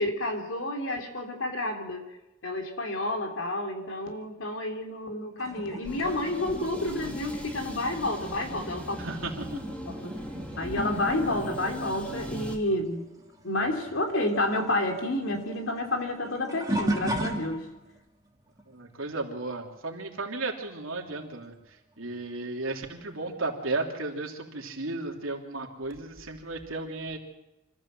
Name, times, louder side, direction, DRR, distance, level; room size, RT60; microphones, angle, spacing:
voice 1, 0.0-2.0 2.4-9.0 9.9-10.2 10.6-13.0 13.4-17.7, left 1 dB, 65° left, 4 dB, 3.3 m, -30 dB
sound 1, 5.4-13.4 13.6-18.0 18.6-18.9 21.2-21.3 22.1-22.2, right 1 dB, 20° right, 2.8 m, -37 dB
sound 2, 5.8-12.6, equal, 5° left, 2.9 m, -40 dB
voice 2, 9.0-9.6 18.7-21.5 22.0-27.2, right 2 dB, 90° right, 1 dB, 3.2 m, -34 dB
26.0 x 14.5 x 7.6 m, 0.99 s
head